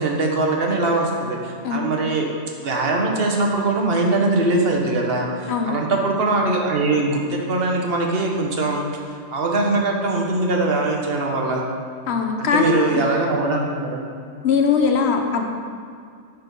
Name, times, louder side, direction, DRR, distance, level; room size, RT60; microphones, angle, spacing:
voice 1, 0.0-2.3 2.6-8.8 9.3-11.6 12.4-14.1, right 2 dB, 55° right, 0 dB, 1.2 m, -22 dB
voice 2, 12.1-13.0 14.4-15.5, left 5 dB, 65° left, 4 dB, 1.0 m, -20 dB
10.5 x 4.2 x 5.3 m, 2.3 s
omnidirectional pair, 1.2 m